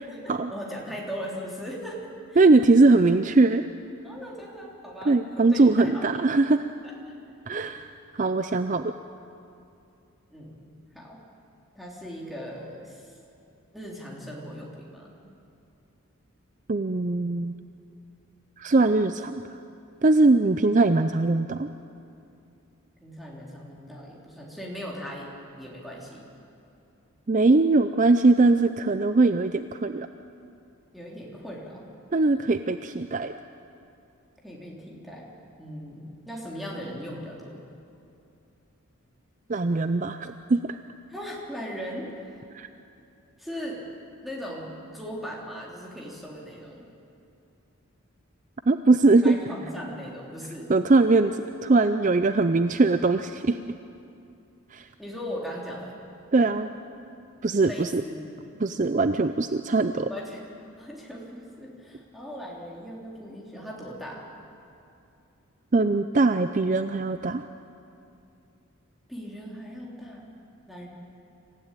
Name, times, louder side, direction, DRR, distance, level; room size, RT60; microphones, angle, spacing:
voice 1, 0.0-2.4 4.0-6.1 6.8-6.9 10.3-10.6 10.9-11.2 11.8-13.2 13.7-15.1 23.0-26.3 30.9-31.8 34.4-37.6 41.1-42.4 43.4-43.8 44.2-46.8 49.2-50.7 55.0-56.0 57.6-58.6 60.1-60.4 60.8-64.2 69.1-70.3 70.7-70.9, equal, ahead, -3 dB, 3.5 m, -39 dB
voice 2, 2.4-3.6 5.1-6.7 7.5-7.9 8.1-8.9 16.7-17.5 18.6-19.4 20.0-21.7 27.3-30.1 32.1-33.3 39.5-40.8 42.5-42.7 48.7-49.4 50.7-53.6 54.7-54.9 56.3-56.7 57.4-58.0 58.6-60.1 65.7-67.4, right 3 dB, 35° right, 10 dB, 0.5 m, -21 dB
26.0 x 15.5 x 9.1 m, 2.7 s
head